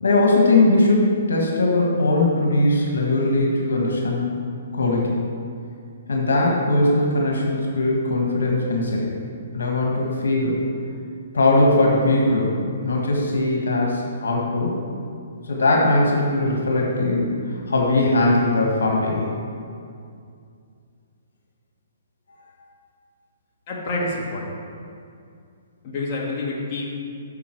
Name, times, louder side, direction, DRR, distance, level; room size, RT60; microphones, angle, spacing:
voice 1, 0.0-4.4 4.7-5.1 6.1-9.2 9.5-10.6 11.3-14.7 15.4-19.3, left 2 dB, 90° left, -1 dB, 1.6 m, -20 dB
voice 2, 23.7-24.6 25.8-26.8, left 2 dB, 35° left, -4 dB, 1.9 m, -28 dB
8.3 x 6.8 x 4.6 m, 2.3 s
hypercardioid pair, 150°, 0 cm